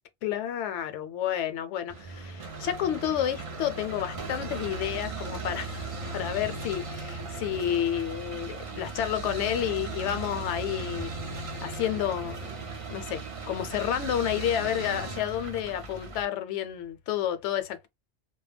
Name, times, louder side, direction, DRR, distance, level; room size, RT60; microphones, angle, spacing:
voice 1, 0.2-11.1 11.6-17.9, left 10 dB, 70° left, 0.8 m, -30 dB
sound 1, 1.9-16.2, right 4 dB, 45° right, 0.4 m, -37 dB
2.2 x 2.2 x 3.2 m
omnidirectional pair, 1.3 m